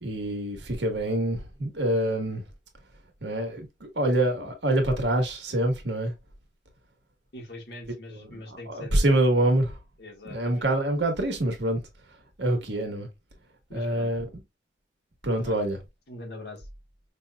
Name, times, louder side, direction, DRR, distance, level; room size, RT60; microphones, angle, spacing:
voice 1, 0.0-2.4 3.2-6.1 8.1-9.8 10.2-13.1 13.7-14.3 15.2-15.8, right 1 dB, 75° right, 1.4 m, -26 dB
voice 2, 7.3-9.1 10.0-10.7 13.7-14.1 15.4-15.7 16.1-16.7, left 2 dB, 60° left, 1.5 m, -43 dB
5.4 x 2.9 x 2.3 m
head